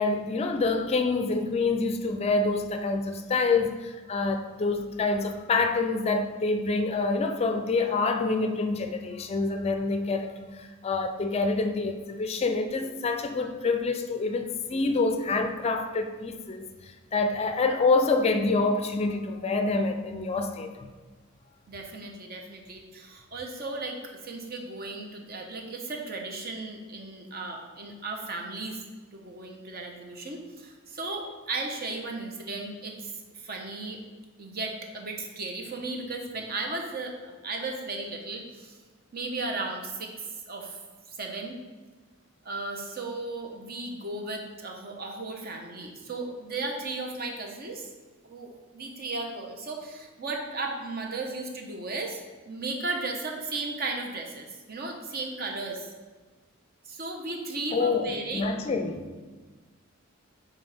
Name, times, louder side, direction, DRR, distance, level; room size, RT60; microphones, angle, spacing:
voice 1, 0.0-16.7 17.1-20.9 57.7-59.1, left 3 dB, 30° left, 6 dB, 0.4 m, -27 dB
voice 2, 21.7-28.8 29.1-34.0 34.4-38.8 39.1-41.6 42.4-47.9 48.2-52.2 52.4-55.9 56.8-58.6, right 3 dB, 50° right, 2 dB, 0.9 m, -35 dB
9.4 x 3.7 x 3.4 m, 1.4 s
head